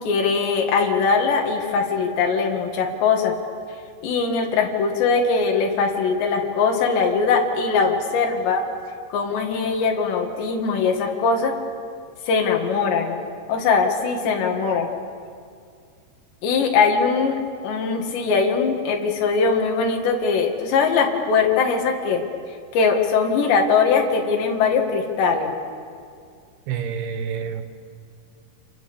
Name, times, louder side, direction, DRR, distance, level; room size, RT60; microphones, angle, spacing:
voice 1, 0.0-3.3 4.0-8.6 9.1-11.5 12.3-13.2 13.5-14.9 16.4-17.4 17.6-22.2 22.7-25.5, left 5 dB, 90° left, 1 dB, 4.3 m, -21 dB
voice 2, 26.7-27.6, right 7 dB, 70° right, 8 dB, 3.1 m, -28 dB
29.0 x 28.5 x 7.1 m, 2.3 s
omnidirectional pair, 4.9 m